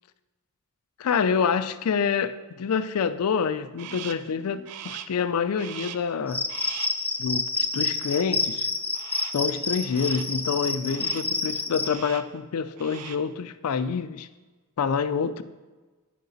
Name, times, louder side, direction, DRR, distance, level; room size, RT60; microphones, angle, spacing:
voice 1, 1.0-6.4 7.2-8.7 9.3-14.3 14.8-15.4, left 6 dB, 75° left, 12 dB, 0.4 m, -27 dB
Crow, 3.8-4.3 4.7-5.2 5.6-6.2 6.5-7.1 9.0-9.5 9.9-10.4 10.8-11.4 11.8-12.4 12.7-13.3, right 10 dB, 85° right, 0.4 m, -41 dB
Cricket, 6.3-11.9, left 3 dB, 10° left, 0.5 m, -28 dB
9.3 x 5.6 x 3.9 m, 1.3 s
head